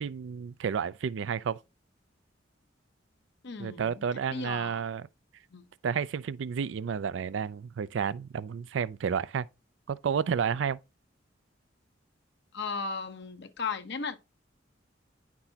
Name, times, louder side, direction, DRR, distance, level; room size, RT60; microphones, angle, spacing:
voice 1, 0.0-1.6 3.6-5.0 5.8-9.5 9.9-10.8, right 7 dB, 70° right, 0.4 m, -31 dB
voice 2, 3.4-4.0 4.3-4.8 5.5-5.6 12.5-14.2, left 4 dB, 60° left, 0.9 m, -36 dB
9.8 x 6.0 x 2.8 m
head